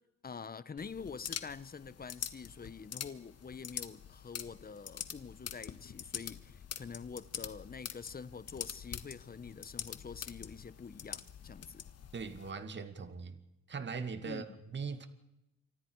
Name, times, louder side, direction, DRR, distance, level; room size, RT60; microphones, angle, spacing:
voice 1, 0.2-11.8 14.2-14.6, left 5 dB, 30° left, 1.1 m, -46 dB
sound 1, 0.8-12.5, left 9 dB, 55° left, 1.5 m, -45 dB
voice 2, 12.1-13.4 13.7-15.1, right 5 dB, 40° right, 2.2 m, -40 dB
29.0 x 25.0 x 4.8 m
cardioid pair, 90°, 30 cm